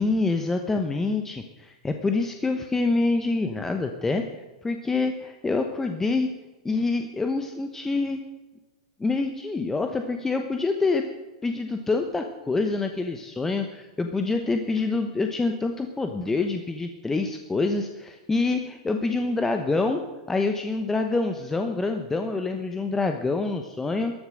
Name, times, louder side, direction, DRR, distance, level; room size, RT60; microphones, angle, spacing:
voice 1, 0.0-4.2 4.6-6.3 6.6-8.2 9.0-11.0 11.4-20.0 20.3-24.1, left 3 dB, 10° left, 5 dB, 1.0 m, -26 dB
14.0 x 11.0 x 6.5 m, 1.1 s
hypercardioid pair, 125°, 3 cm